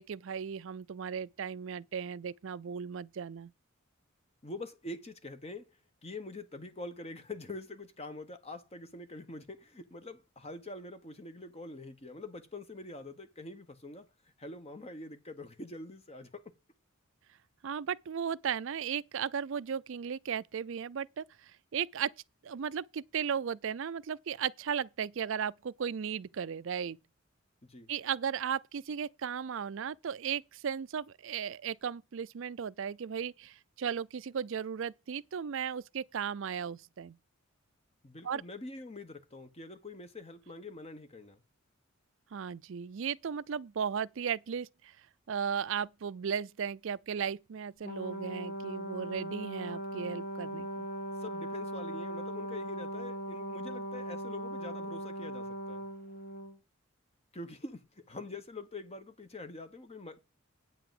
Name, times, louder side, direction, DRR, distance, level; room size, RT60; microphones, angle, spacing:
voice 1, 0.0-3.5 17.6-21.2 21.7-22.1 22.4-27.0 27.9-37.2 38.2-38.4 42.3-44.9 45.3-50.9, right 7 dB, 65° right, 0.4 m, -36 dB
voice 2, 4.4-5.7 6.0-14.1 14.4-16.5 27.6-27.9 38.0-41.4 51.2-55.8 57.3-60.2, left 2 dB, 30° left, 1.1 m, -45 dB
Brass instrument, 47.8-56.5, right 1 dB, 45° left, 1.9 m, -39 dB
9.2 x 4.8 x 7.7 m
head